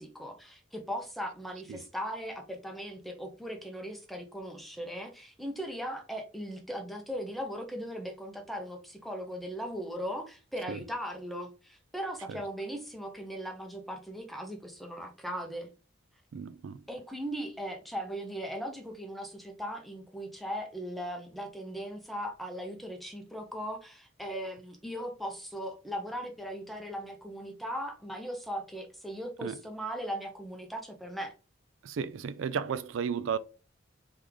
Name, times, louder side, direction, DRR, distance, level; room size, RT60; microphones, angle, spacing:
voice 1, 0.0-15.7 16.9-31.3, equal, ahead, 0.7 m, -38 dB
voice 2, 16.3-16.8 29.4-29.6 31.8-33.4, right 6 dB, 80° right, 0.4 m, -34 dB
3.4 x 3.1 x 3.7 m
head